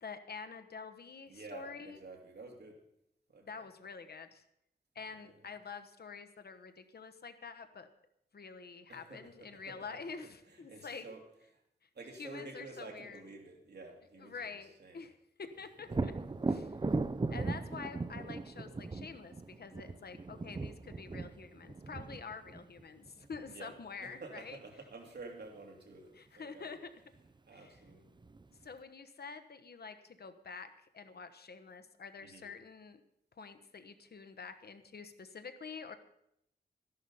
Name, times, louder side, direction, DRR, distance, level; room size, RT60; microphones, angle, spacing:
voice 1, 0.0-2.0 3.4-4.4 4.9-7.9 8.3-11.0 12.2-13.2 14.2-16.1 16.5-16.9 17.3-24.6 26.1-26.9 27.5-27.8 28.6-33.0 33.4-35.9, left 5 dB, 70° left, 9 dB, 1.1 m, -47 dB
voice 2, 1.3-2.8 3.3-3.7 5.1-5.5 8.9-9.8 10.5-11.2 11.5-11.6 11.9-14.5 14.8-15.0 15.9-16.0 16.6-16.7 23.5-23.7 24.0-26.8 27.5-28.2 32.2-32.5, right 3 dB, 80° right, 1 dB, 2.7 m, -50 dB
Thunder, 15.9-23.6 27.2-27.3 27.8-28.7, right 3 dB, 25° right, 0.5 m, -38 dB
13.5 x 11.0 x 5.5 m, 0.78 s
wide cardioid pair, 120°, 17 cm